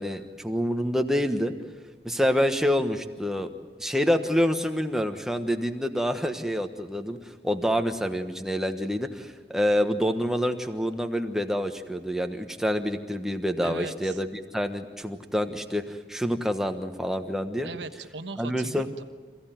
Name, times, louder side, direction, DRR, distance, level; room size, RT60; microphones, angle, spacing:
voice 1, 0.0-1.5 2.0-3.5 3.8-7.2 7.4-14.3 14.5-17.7 18.4-18.9, equal, 5° right, 5 dB, 1.2 m, -27 dB
voice 2, 13.6-14.2 17.6-19.0, right 3 dB, 90° right, 8 dB, 1.3 m, -38 dB
27.0 x 16.0 x 9.2 m, 1.5 s
head